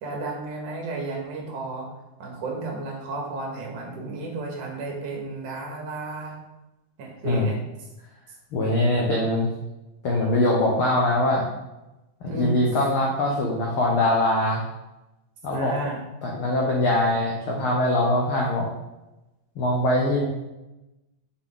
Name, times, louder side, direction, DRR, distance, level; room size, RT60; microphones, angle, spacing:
voice 1, 0.0-1.8 2.2-6.4 7.0-7.6 12.2-12.6 15.5-16.0, right 3 dB, 60° right, 0 dB, 3.1 m, -33 dB
voice 2, 8.5-9.5 10.0-11.5 12.2-14.6 15.4-15.7 16.2-18.7 19.6-20.3, left 1 dB, 90° left, -2 dB, 1.1 m, -22 dB
6.9 x 6.6 x 3.8 m, 0.99 s
omnidirectional pair, 4.2 m